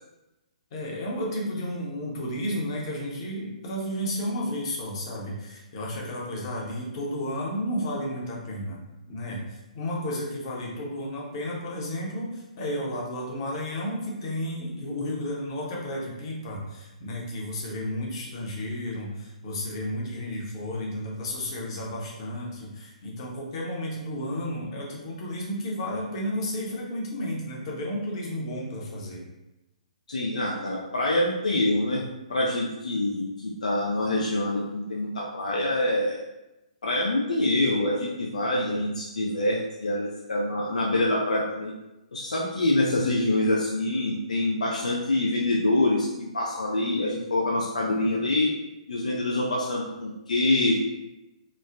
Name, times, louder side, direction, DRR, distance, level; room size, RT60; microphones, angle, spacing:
voice 1, 0.7-8.8 9.1-29.2, equal, 45° left, -3 dB, 0.8 m, -32 dB
voice 2, 30.1-32.0 32.3-36.2 36.8-41.7 42.1-46.1 46.3-48.5 48.9-50.7, left 1 dB, 70° left, -3 dB, 0.4 m, -25 dB
3.0 x 2.0 x 2.5 m, 0.98 s
figure-of-eight pair, 125°, 4 cm